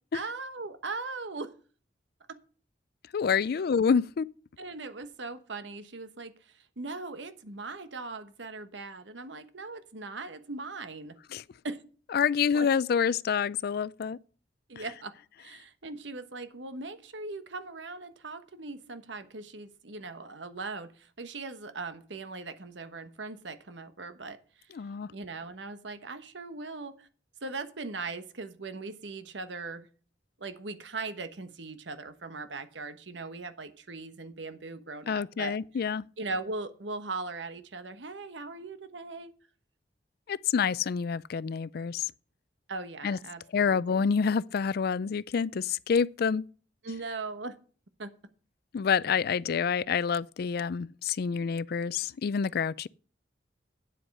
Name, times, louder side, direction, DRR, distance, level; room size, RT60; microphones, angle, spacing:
voice 1, 0.1-1.5 2.3-2.4 4.6-11.2 11.6-11.8 12.5-12.7 14.7-15.1 15.4-24.8 25.1-27.1 27.4-29.9 30.4-35.6 36.2-39.3 42.7-44.2 46.8-47.6 48.0-48.1 49.3-49.4, right 3 dB, 85° right, 1.2 m, -39 dB
voice 2, 3.1-4.3 11.3-11.4 12.1-14.2 24.8-25.1 35.1-36.0 40.3-42.1 43.0-43.2 43.5-46.4 48.7-52.9, left 6 dB, 60° left, 0.4 m, -27 dB
9.3 x 7.9 x 5.3 m
head